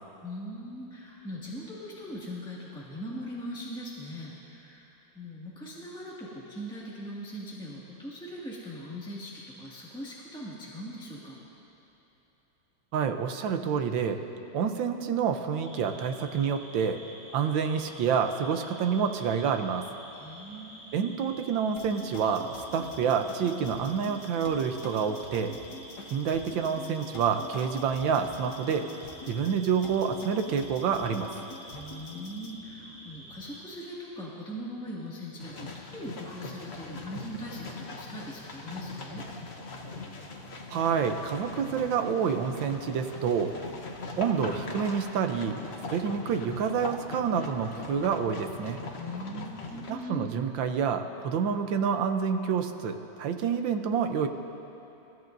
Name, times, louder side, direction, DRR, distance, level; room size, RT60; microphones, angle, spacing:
voice 1, 0.2-11.4 20.1-20.9 31.7-39.3 48.9-50.4, equal, ahead, -8 dB, 1.8 m, -40 dB
voice 2, 12.9-14.2 14.5-17.0 17.3-19.9 20.9-25.5 26.1-28.8 29.3-31.3 40.7-43.5 44.2-45.6 45.9-48.8 49.9-54.3, right 7 dB, 75° right, 7 dB, 1.5 m, -28 dB
sound 1, 15.5-33.6, equal, 30° right, 3.9 m, -49 dB
sound 2, 21.8-32.5, left 3 dB, 60° left, 1.5 m, -46 dB
sound 3, 35.4-49.9, left 3 dB, 40° left, 1.1 m, -41 dB
29.0 x 14.0 x 2.6 m, 3.0 s
omnidirectional pair, 2.2 m